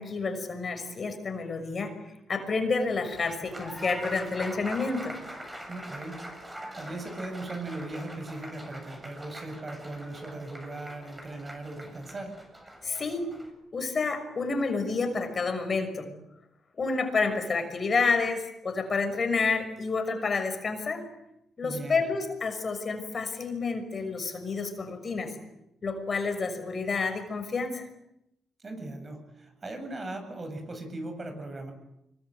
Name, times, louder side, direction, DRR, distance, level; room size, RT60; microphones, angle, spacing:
voice 1, 0.0-5.2 12.8-13.3 13.7-16.1 16.8-21.1 21.6-25.3 25.8-27.9, left 4 dB, 40° left, 7 dB, 6.0 m, -29 dB
Applause, 3.1-13.5, right 1 dB, 15° right, 7.4 m, -43 dB
voice 2, 5.7-12.4 21.6-22.0 28.6-31.7, right 2 dB, 30° right, 6 dB, 8.0 m, -39 dB
25.5 x 23.0 x 9.3 m, 0.83 s
cardioid pair, 90°, 0 cm